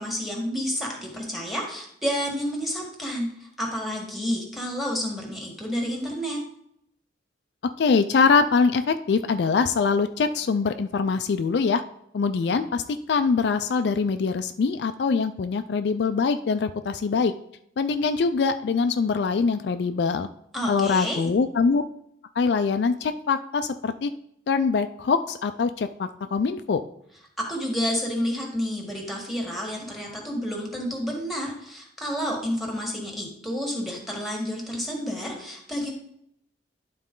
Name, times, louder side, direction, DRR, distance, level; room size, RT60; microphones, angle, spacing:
voice 1, 0.0-6.4 20.5-21.2 27.4-35.9, equal, ahead, 0 dB, 1.7 m, -30 dB
voice 2, 7.8-11.8 12.1-12.8 13.1-17.3 17.8-20.3 20.7-21.8 22.4-24.1 24.5-26.8, left 5 dB, 65° left, 9 dB, 0.4 m, -23 dB
11.0 x 4.1 x 3.7 m, 0.72 s
head